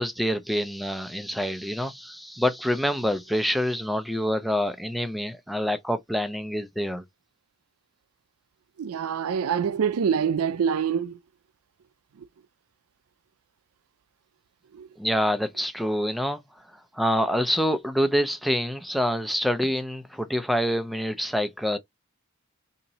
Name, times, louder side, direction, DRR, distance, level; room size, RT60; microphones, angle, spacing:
voice 1, 0.0-7.0 15.0-16.4 16.9-21.8, equal, ahead, 0.4 m, -26 dB
voice 2, 8.8-11.2 14.8-14.9, right 7 dB, 85° right, 0.4 m, -25 dB
2.9 x 2.7 x 4.0 m
head